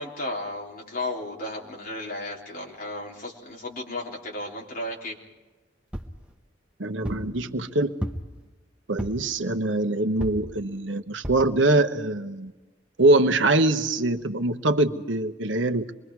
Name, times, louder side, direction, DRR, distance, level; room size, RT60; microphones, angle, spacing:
voice 1, 0.0-5.2, left 1 dB, 45° left, -2 dB, 3.7 m, -34 dB
sound 1, 5.9-6.2 7.0-7.3 8.0-8.4 9.0-9.3 10.2-10.5 11.2-11.5 12.1-12.2 12.5-12.6, equal, 5° right, 1.2 m, -33 dB
voice 2, 6.8-7.9 8.9-12.5 13.0-15.9, right 2 dB, 75° right, 6 dB, 1.2 m, -23 dB
26.5 x 22.5 x 4.8 m, 1.2 s
head